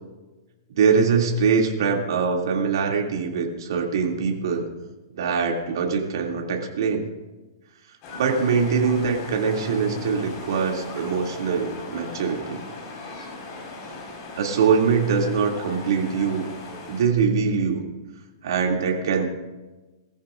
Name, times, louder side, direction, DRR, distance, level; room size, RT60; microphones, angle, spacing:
voice 1, 0.7-4.7 5.2-7.1 8.1-12.6 14.4-16.4 16.9-17.8 18.4-19.2, right 5 dB, 70° right, 0 dB, 2.7 m, -23 dB
sound 1, 8.0-17.0, left 2 dB, 35° left, 5.1 m, -38 dB
21.5 x 14.5 x 2.6 m, 1.2 s
hypercardioid pair, 155°, 2 cm